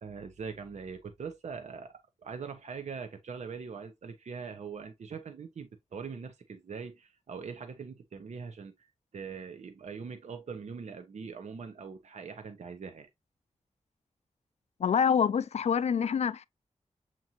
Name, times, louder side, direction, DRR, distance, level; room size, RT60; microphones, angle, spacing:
voice 1, 0.0-8.9 9.1-13.1, right 5 dB, 70° right, 0.7 m, -42 dB
voice 2, 14.8-16.5, left 7 dB, 65° left, 0.4 m, -26 dB
7.4 x 2.6 x 2.8 m
wide cardioid pair, 115°, 12 cm